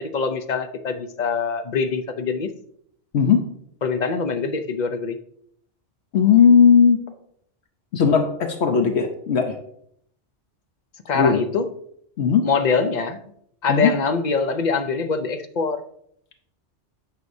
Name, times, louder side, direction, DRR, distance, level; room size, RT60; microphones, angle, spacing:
voice 1, 0.0-2.5 3.8-5.2 11.1-11.7 12.4-13.2 13.6-15.8, left 4 dB, 50° left, 9 dB, 0.6 m, -24 dB
voice 2, 6.1-7.0 7.9-9.6 11.1-11.4 12.2-12.5 13.7-13.9, left 6 dB, 75° left, 5 dB, 1.0 m, -17 dB
9.3 x 6.4 x 2.7 m, 0.69 s
omnidirectional pair, 1.2 m